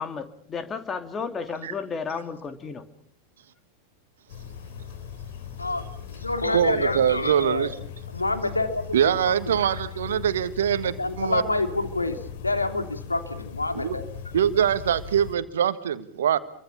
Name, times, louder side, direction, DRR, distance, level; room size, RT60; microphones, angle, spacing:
voice 1, 0.0-2.8, left 5 dB, 20° left, 8 dB, 2.9 m, -33 dB
sound 1, 4.3-15.4, left 8 dB, 55° left, 3.4 m, -39 dB
voice 2, 5.6-7.7 8.1-9.3 11.0-14.0, left 2 dB, 80° left, 7 dB, 2.9 m, -28 dB
voice 3, 6.5-7.7 8.9-11.6 13.7-14.0 14.3-16.4, right 9 dB, 60° right, 12 dB, 1.7 m, -23 dB
28.5 x 24.0 x 7.1 m, 0.64 s
figure-of-eight pair, 90°, 0 cm